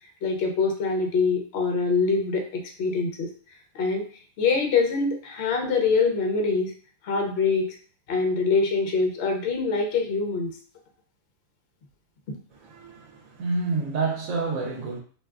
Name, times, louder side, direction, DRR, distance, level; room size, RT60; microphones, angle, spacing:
voice 1, 0.2-3.3 3.7-4.0 4.4-6.7 7.0-7.7 8.1-10.5, left 4 dB, 60° left, 0.8 m, -24 dB
voice 2, 12.5-15.0, right 3 dB, 85° right, 1.0 m, -29 dB
3.3 x 2.6 x 2.3 m
omnidirectional pair, 1.4 m